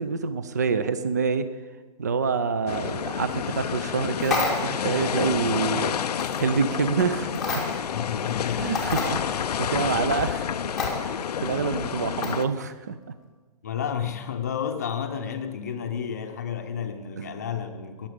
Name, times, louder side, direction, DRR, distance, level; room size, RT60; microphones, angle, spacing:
voice 1, 0.0-1.5 2.0-6.0 6.4-7.5 8.6-10.7 11.0-13.0, right 5 dB, 25° right, 12 dB, 0.4 m, -27 dB
sound 1, 2.7-12.5, left 8 dB, 85° left, 0.5 m, -29 dB
sound 2, 4.2-4.8 6.2-6.4 7.3-7.9 8.3-8.4 8.7-9.1 10.8-10.9 12.2-12.5, left 3 dB, ahead, 0.9 m, -28 dB
voice 2, 7.9-8.7 13.6-18.1, left 8 dB, 25° left, 6 dB, 0.7 m, -31 dB
20.5 x 7.3 x 5.1 m, 1.3 s
hypercardioid pair, 180°, 20 cm